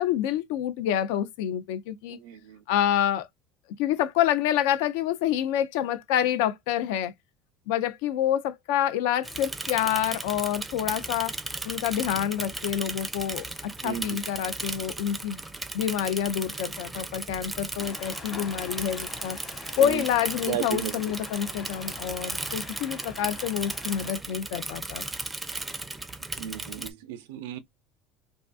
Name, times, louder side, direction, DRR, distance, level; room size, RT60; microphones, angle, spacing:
voice 1, 0.0-2.2 2.7-3.3 3.8-7.1 7.7-11.3 11.6-15.4 15.7-19.4 19.8-25.0, left 10 dB, 80° left, 0.4 m, -27 dB
voice 2, 2.1-2.6 13.8-14.2 19.8-20.0 20.5-21.1 26.4-27.6, right 10 dB, 85° right, 0.4 m, -34 dB
Bicycle / Mechanisms, 9.2-26.9, right 2 dB, 15° right, 0.4 m, -36 dB
sound 1, 17.8-24.2, left 5 dB, 40° left, 1.0 m, -45 dB
2.5 x 2.4 x 2.3 m
supercardioid pair, 100°, 0 cm